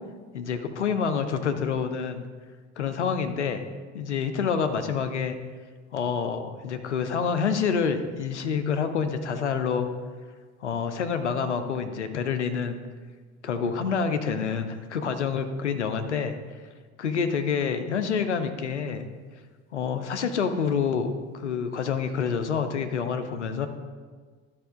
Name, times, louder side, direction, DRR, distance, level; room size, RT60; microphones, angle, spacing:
voice 1, 0.3-2.3 2.8-3.7 3.9-5.3 5.9-9.9 10.6-12.8 13.4-16.3 17.0-19.1 19.7-23.7, left 6 dB, 85° left, 8 dB, 0.7 m, -27 dB
12.5 x 4.4 x 3.7 m, 1.5 s
figure-of-eight pair, 55°, 34 cm